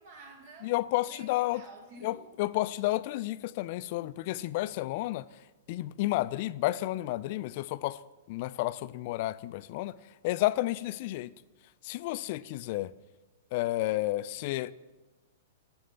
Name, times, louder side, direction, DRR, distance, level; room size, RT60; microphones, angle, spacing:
voice 1, 0.0-0.7 1.0-2.4, right 2 dB, 55° right, 1.4 m, -50 dB
voice 2, 0.6-1.6 2.0-5.3 5.7-8.0 8.3-9.9 10.2-11.3 11.8-12.9 13.5-14.7, left 17 dB, 50° left, 0.3 m, -31 dB
7.9 x 6.5 x 5.6 m
hypercardioid pair, 115°, 0 cm